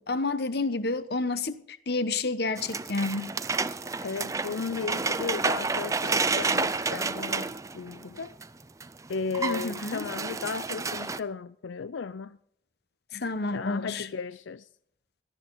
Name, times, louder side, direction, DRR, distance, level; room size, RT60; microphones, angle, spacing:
voice 1, 0.0-1.6 1.9-3.3 9.4-10.0 13.1-14.1, left 3 dB, 55° left, 0.9 m, -29 dB
sound 1, 2.6-8.5 8.8-8.9 9.1-11.2, right 4 dB, 15° right, 0.4 m, -30 dB
voice 2, 4.0-8.4 9.1-12.4 13.5-14.7, left 5 dB, 90° left, 0.5 m, -35 dB
18.0 x 13.0 x 3.9 m
head